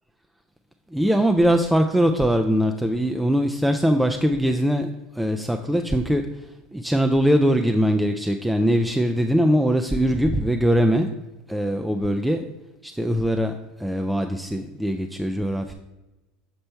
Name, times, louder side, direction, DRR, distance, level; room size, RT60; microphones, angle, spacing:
voice 1, 0.9-4.9 5.2-6.2 6.7-11.1 11.5-12.5 12.8-15.7, equal, 5° right, 5 dB, 0.3 m, -21 dB
6.7 x 4.3 x 4.4 m, 1.0 s
supercardioid pair, 130°, 0 cm